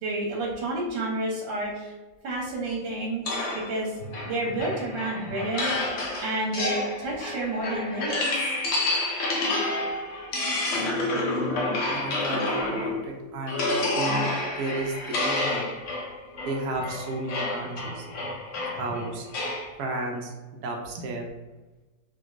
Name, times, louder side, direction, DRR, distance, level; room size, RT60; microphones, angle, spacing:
voice 1, 0.0-1.9 2.2-3.3 3.7-3.9 4.2-8.2, right 2 dB, 90° right, -3 dB, 1.5 m, -30 dB
sound 1, 3.3-13.1 13.5-19.7, left 2 dB, 70° left, 0.7 m, -29 dB
voice 2, 11.9-15.7 16.4-18.1 18.5-19.3 19.8-21.2, right 2 dB, 70° right, 0 dB, 1.0 m, -33 dB
3.9 x 2.2 x 2.4 m, 1.2 s
omnidirectional pair, 2.0 m